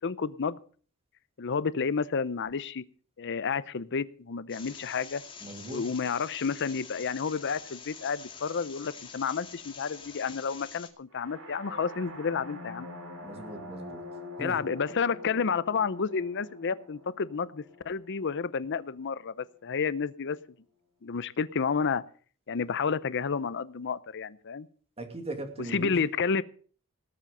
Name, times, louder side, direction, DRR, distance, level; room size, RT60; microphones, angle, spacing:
voice 1, 0.0-0.6 1.4-2.8 3.2-5.2 5.7-12.9 14.4-20.4 21.0-22.0 22.5-24.7 25.7-26.4, left 5 dB, 55° left, 16 dB, 0.6 m, -30 dB
sound 1, 4.5-10.9, left 6 dB, 25° left, 2.1 m, -46 dB
voice 2, 5.4-5.8 13.2-14.0 14.4-14.6 25.0-26.0, right 1 dB, 25° right, 5 dB, 2.4 m, -39 dB
sound 2, 11.1-19.0, left 1 dB, 80° right, 3.4 m, -45 dB
18.5 x 7.5 x 6.6 m, 0.43 s
head